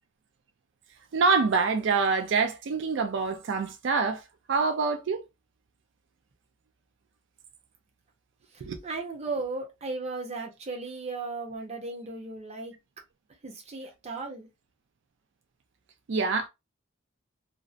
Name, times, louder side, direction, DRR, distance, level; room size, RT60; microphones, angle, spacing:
voice 1, 1.1-4.2 4.5-5.2 8.6-8.8 16.1-16.5, right 4 dB, 65° right, 0.4 m, -25 dB
voice 2, 8.8-12.7 13.4-14.5, right 3 dB, 35° right, 0.7 m, -36 dB
2.5 x 2.0 x 2.4 m
head